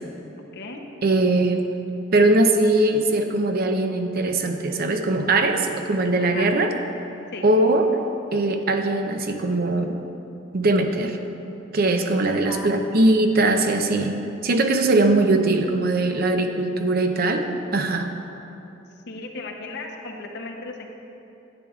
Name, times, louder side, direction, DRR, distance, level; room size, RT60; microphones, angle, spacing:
voice 1, 1.0-1.6 2.1-6.7 7.4-8.0 8.3-10.0 10.5-11.2 11.7-14.2 14.4-17.5 17.7-18.1, right 2 dB, 50° right, 5 dB, 0.5 m, -20 dB
voice 2, 19.1-20.9, left 3 dB, 60° left, 2 dB, 0.7 m, -35 dB
10.5 x 8.6 x 2.4 m, 2.8 s
head